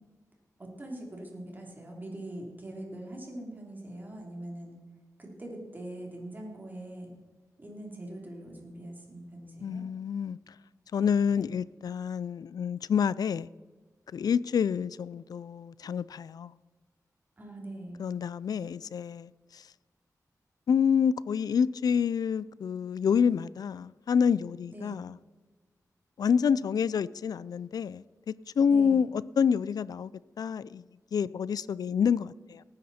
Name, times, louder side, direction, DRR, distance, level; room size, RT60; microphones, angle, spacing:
voice 1, 0.6-4.7 5.2-7.1 7.6-9.8 17.4-18.0 24.7-25.0 28.7-29.0, right 1 dB, 30° right, 3.2 m, -42 dB
voice 2, 9.6-10.5 10.9-13.5 14.1-16.5 18.0-19.6 20.7-25.2 26.2-28.0 28.6-30.1 30.4-30.8 31.1-32.6, left 7 dB, 80° left, 0.4 m, -28 dB
18.5 x 9.8 x 4.3 m
wide cardioid pair, 130°, 6 cm